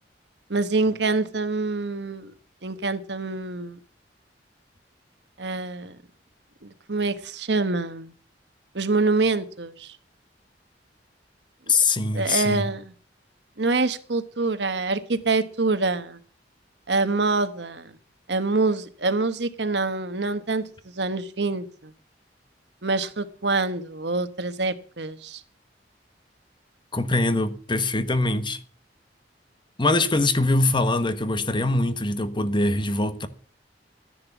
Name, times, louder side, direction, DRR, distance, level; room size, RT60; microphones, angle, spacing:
voice 1, 0.5-2.3 2.6-3.8 5.4-6.0 6.6-8.1 8.7-9.9 12.1-12.9 13.6-16.2 16.9-17.9 18.3-20.7 20.9-21.6 22.8-25.4, right 3 dB, 70° right, 1.2 m, -25 dB
voice 2, 11.7-12.7 26.9-28.6 29.8-33.3, left 2 dB, 25° left, 1.1 m, -23 dB
13.0 x 10.5 x 7.2 m
head